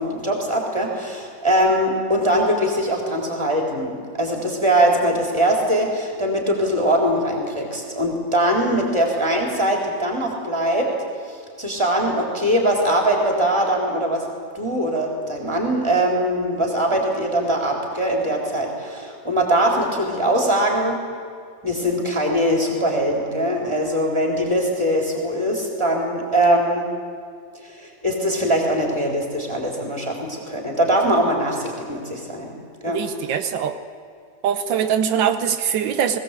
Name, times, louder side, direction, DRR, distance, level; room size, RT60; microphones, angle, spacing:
voice 1, 0.0-10.9 11.3-14.3 14.5-21.0 21.6-26.9 27.6-32.5 32.8-33.0, right 1 dB, 15° right, 0 dB, 3.9 m, -21 dB
voice 2, 32.9-33.8 34.4-36.2, right 8 dB, 85° right, 9 dB, 1.7 m, -22 dB
20.5 x 17.0 x 8.4 m, 2.2 s
omnidirectional pair, 2.0 m